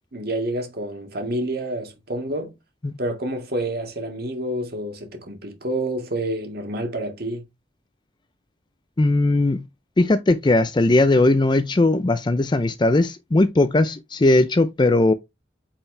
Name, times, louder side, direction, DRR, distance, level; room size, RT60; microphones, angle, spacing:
voice 1, 0.1-2.5 3.0-7.4, right 1 dB, 55° right, 2.0 m, -28 dB
voice 2, 9.0-9.6 10.0-15.1, left 2 dB, 25° left, 0.5 m, -18 dB
8.8 x 4.6 x 3.3 m
head